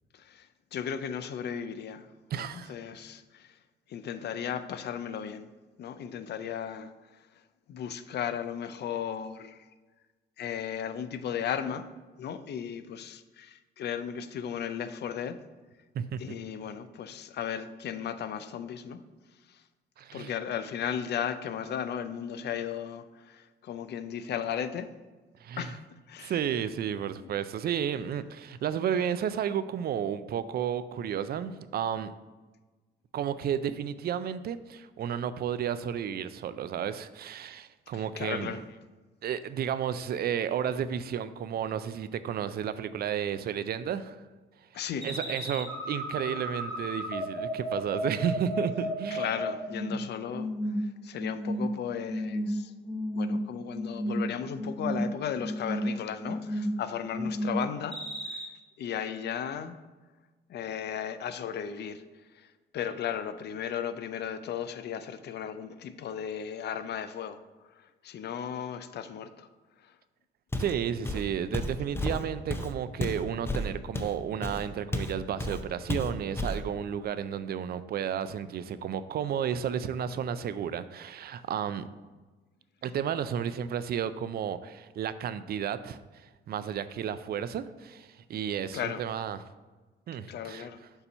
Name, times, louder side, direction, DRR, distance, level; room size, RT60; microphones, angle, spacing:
voice 1, 0.1-2.1 2.3-3.6 3.9-5.5 5.8-6.9 7.7-9.6 10.4-11.9 12.2-15.4 16.2-19.0 19.5-19.6 20.1-24.9 25.6-25.8 26.1-26.3 27.2-27.3 37.9-38.6 44.7-45.1 49.1-50.5 50.8-52.7 53.1-58.0 58.3-58.4 58.8-59.8 60.5-62.0 62.3-67.4 67.7-69.5 69.8-69.9 88.7-89.0 90.3-90.8, left 8 dB, 60° left, 0.5 m, -35 dB
voice 2, 2.3-2.7 15.9-16.2 20.0-20.3 25.4-25.7 26.2-32.1 33.1-38.6 39.2-44.2 45.0-49.3 49.9-50.0 70.6-81.9 82.8-89.4 90.1-90.7, right 8 dB, 50° right, 0.4 m, -32 dB
sound 1, 45.0-50.0 50.3-50.8 51.2-51.7 52.1-52.5 52.8-53.4 53.7-54.2 54.6-55.1 55.4-55.9 56.2-56.7 57.1-57.6 57.9-58.4, equal, 30° left, 1.9 m, -32 dB
Walk footsteps, 70.5-70.8 71.0-75.1 75.4-75.6 75.9-76.6, left 1 dB, 10° left, 0.5 m, -32 dB
6.8 x 2.8 x 5.4 m
cardioid pair, 90°, 20 cm